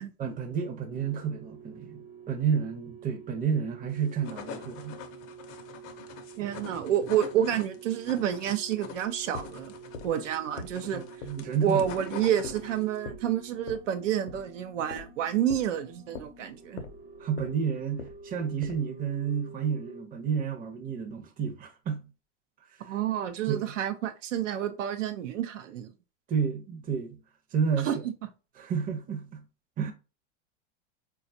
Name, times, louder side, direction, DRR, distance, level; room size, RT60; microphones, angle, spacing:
voice 1, 0.0-5.0 6.4-6.5 10.9-11.9 17.2-22.1 23.5-23.7 26.3-27.2 27.5-28.1 28.6-29.5 29.8-29.9, right 7 dB, 25° right, 0.6 m, -31 dB
sound 1, 0.9-20.0, right 6 dB, 55° right, 1.1 m, -49 dB
sound 2, 4.0-13.0, left 7 dB, 40° left, 0.5 m, -45 dB
voice 2, 6.4-9.7 10.0-11.0 11.6-16.8 22.8-25.9 27.8-28.0, right 10 dB, 85° right, 0.6 m, -29 dB
sound 3, 8.9-18.9, left 5 dB, 90° left, 0.6 m, -44 dB
4.0 x 2.3 x 2.6 m
hypercardioid pair, 105°, 36 cm